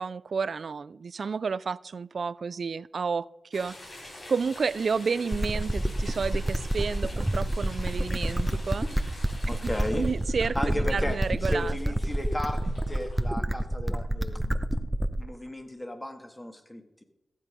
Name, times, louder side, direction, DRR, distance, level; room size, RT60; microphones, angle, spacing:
voice 1, 0.0-9.2 9.4-11.8, right 5 dB, 70° right, 0.3 m, -31 dB
sound 1, 3.5-13.2, left 1 dB, 65° left, 4.6 m, -46 dB
sound 2, 5.3-15.3, right 1 dB, 15° right, 0.8 m, -28 dB
voice 2, 9.5-10.1 10.4-12.6 12.9-14.6 15.2-16.8, left 1 dB, 15° left, 1.8 m, -34 dB
14.5 x 8.0 x 5.1 m
cardioid pair, 60°, 0 cm